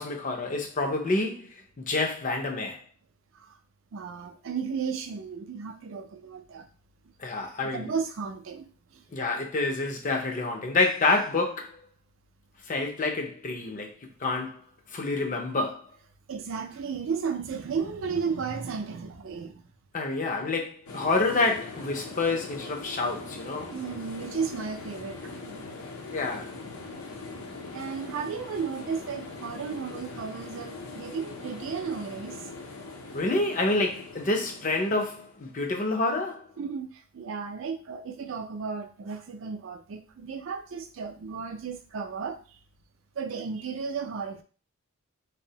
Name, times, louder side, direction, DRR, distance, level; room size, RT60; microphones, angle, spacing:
voice 1, 0.0-1.5 1.8-2.8 7.2-7.9 9.1-11.7 12.7-13.9 14.2-14.6 14.9-15.8 19.9-23.7 26.1-26.5 33.1-36.5, left 3 dB, 35° left, 0.5 m, -28 dB
voice 2, 3.9-6.7 7.6-9.0 16.3-19.6 23.7-25.7 27.7-32.4 36.6-42.4 43.2-44.4, right 6 dB, 60° right, 0.4 m, -34 dB
sound 1, 20.9-35.6, left 3 dB, 80° left, 0.6 m, -41 dB
2.6 x 2.0 x 2.7 m
head